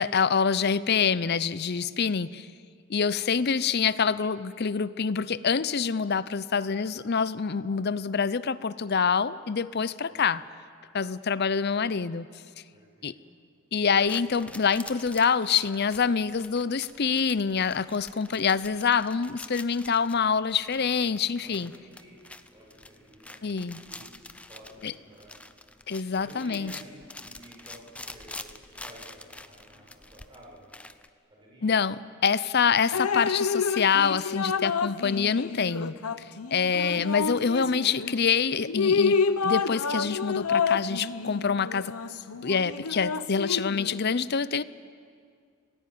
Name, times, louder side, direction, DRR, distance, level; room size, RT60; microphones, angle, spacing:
voice 1, 0.0-2.5 2.9-10.4 10.9-12.3 13.0-13.1 13.7-21.7 23.4-23.8 24.8-24.9 25.9-26.7 31.6-39.2 39.4-41.9 42.4-44.6, left 6 dB, 45° left, 17 dB, 0.6 m, -26 dB
voice 2, 3.0-3.4 10.1-10.2 12.7-13.3 21.4-22.1 22.5-24.1 24.4-25.3 26.1-30.8 31.3-31.7, equal, 20° right, -4 dB, 7.2 m, -51 dB
sound 1, 13.9-31.1, left 2 dB, 5° left, 0.6 m, -47 dB
Drip, 32.9-38.2 38.6-44.0, left 5 dB, 85° left, 0.8 m, -28 dB
26.5 x 18.5 x 9.4 m, 2.2 s
head